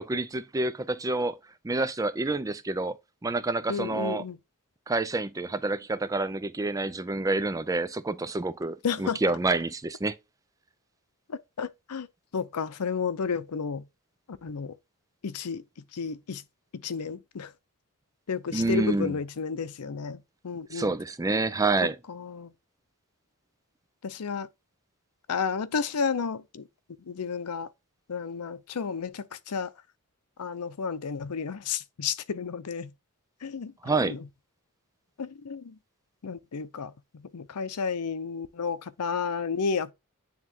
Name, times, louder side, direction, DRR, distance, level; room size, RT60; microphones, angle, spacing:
voice 1, 0.0-1.4 1.6-3.0 3.2-4.2 4.9-10.2 18.5-19.2 20.7-22.0 33.8-34.2, right 2 dB, 15° right, 0.4 m, -28 dB
voice 2, 3.7-4.4 8.8-9.2 11.3-12.1 12.3-13.8 14.3-14.7 15.2-15.6 15.9-16.4 16.7-17.5 18.3-20.9 22.1-22.5 24.0-24.5 25.3-26.7 27.1-27.7 28.1-29.7 30.4-32.9 33.4-33.7 34.0-34.2 35.2-35.8 36.2-39.9, left 5 dB, 85° left, 0.6 m, -32 dB
9.4 x 3.6 x 2.8 m
head